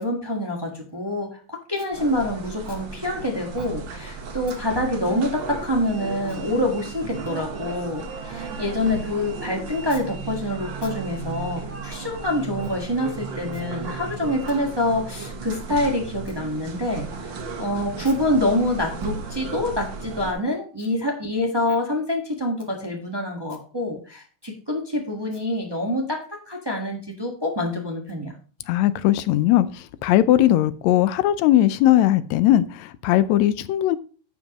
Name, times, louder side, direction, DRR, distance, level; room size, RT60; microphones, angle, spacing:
voice 1, 0.0-28.3, left 1 dB, 25° right, 1 dB, 0.5 m, -26 dB
sound 1, 1.9-20.3, right 5 dB, 50° right, 1.6 m, -35 dB
voice 2, 28.7-34.0, left 13 dB, 80° left, 14 dB, 1.8 m, -19 dB
10.5 x 7.5 x 3.0 m, 0.38 s
omnidirectional pair, 3.3 m